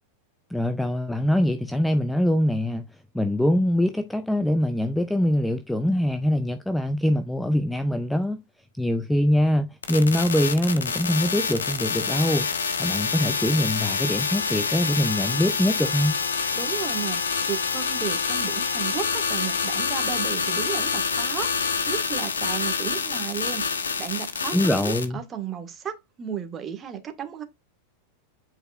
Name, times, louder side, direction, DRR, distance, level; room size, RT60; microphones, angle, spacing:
voice 1, 0.5-2.8 3.1-8.4 8.8-12.5 12.8-16.2 24.5-25.2, left 1 dB, 5° left, 0.5 m, -23 dB
sound 1, 9.8-25.0, left 5 dB, 70° left, 1.2 m, -27 dB
voice 2, 16.5-27.4, right 9 dB, 25° right, 1.7 m, -34 dB
9.0 x 4.7 x 2.5 m
figure-of-eight pair, 90°, 0 cm